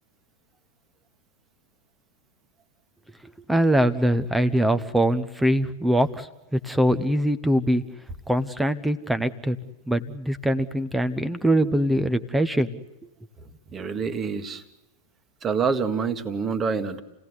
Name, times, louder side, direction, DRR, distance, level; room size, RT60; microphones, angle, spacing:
voice 1, 3.5-6.3 6.5-7.8 8.3-9.6 9.9-12.7, right 1 dB, 5° right, 12 dB, 1.1 m, -22 dB
voice 2, 13.7-14.6 15.4-17.0, right 5 dB, 25° right, 10 dB, 1.8 m, -26 dB
28.5 x 17.5 x 9.7 m, 0.97 s
figure-of-eight pair, 90°, 0 cm